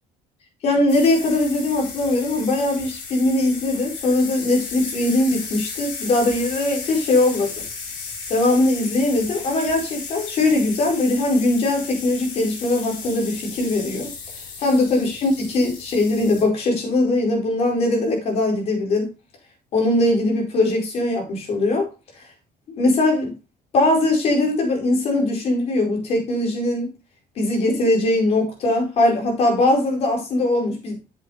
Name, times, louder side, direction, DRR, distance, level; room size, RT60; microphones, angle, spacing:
voice 1, 0.6-7.6 8.3-14.1 14.6-19.1 19.7-21.9 22.7-23.3 23.7-26.9 27.4-31.0, left 2 dB, 50° left, 4.7 m, -20 dB
sound 1, 0.9-16.4, left 5 dB, 85° left, 5.2 m, -35 dB
8.1 x 7.7 x 4.2 m
cardioid pair, 135°, 14 cm